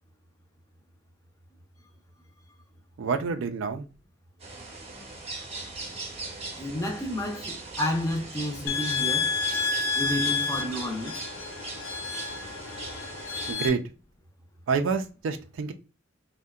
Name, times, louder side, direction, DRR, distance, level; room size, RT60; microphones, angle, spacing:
voice 1, 3.0-3.8 13.5-13.8 14.7-15.7, right 5 dB, 75° right, 0.4 m, -27 dB
sound 1, 4.4-13.5, right 3 dB, 35° right, 0.6 m, -40 dB
voice 2, 6.5-9.3 9.9-11.1, left 1 dB, 15° left, 0.5 m, -31 dB
sound 2, 8.7-13.7, left 4 dB, 80° left, 0.4 m, -30 dB
2.7 x 2.1 x 2.2 m
head